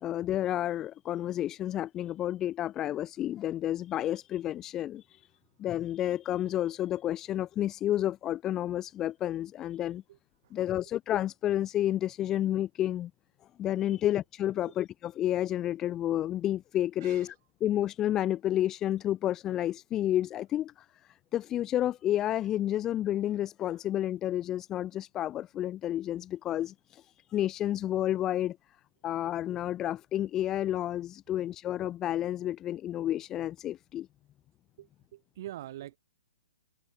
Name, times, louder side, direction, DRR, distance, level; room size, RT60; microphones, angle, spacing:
voice 1, 0.0-5.2 5.6-10.0 10.5-13.1 13.6-17.3 17.6-28.6 29.0-34.1, left 12 dB, 20° left, 0.5 m, -30 dB
voice 2, 17.0-17.3 34.8-36.0, right 14 dB, 50° right, 3.7 m, -45 dB
hypercardioid pair, 135°, 2 cm